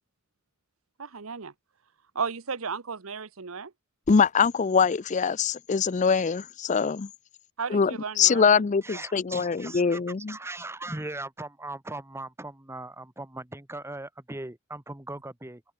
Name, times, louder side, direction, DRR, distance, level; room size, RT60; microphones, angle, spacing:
voice 1, 1.0-1.5 2.1-3.7 7.6-8.6, right 5 dB, 85° right, 1.0 m, -34 dB
voice 2, 4.1-7.1 7.7-10.4, left 6 dB, 35° left, 0.4 m, -23 dB
voice 3, 8.8-10.0 10.3-15.6, right 2 dB, 10° right, 1.2 m, -39 dB
open air
head